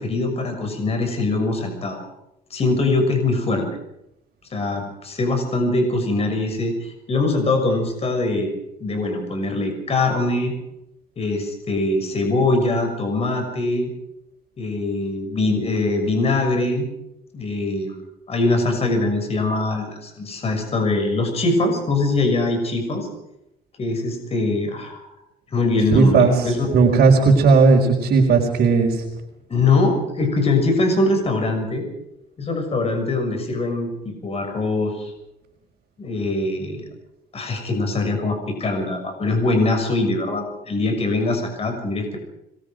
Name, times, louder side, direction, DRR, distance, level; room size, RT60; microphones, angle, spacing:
voice 1, 0.0-2.0 2.5-3.7 4.5-8.5 8.8-10.5 11.2-13.9 14.6-16.9 17.3-17.9 18.3-23.1 23.8-25.0 25.5-26.7 29.5-31.8 32.4-35.1 36.0-36.9 37.3-42.2, left 2 dB, 35° left, 4 dB, 6.5 m, -22 dB
voice 2, 25.9-26.3 26.7-29.0, right 4 dB, 60° right, -2 dB, 4.7 m, -15 dB
27.0 x 23.0 x 5.2 m, 0.84 s
cardioid pair, 110°, 17 cm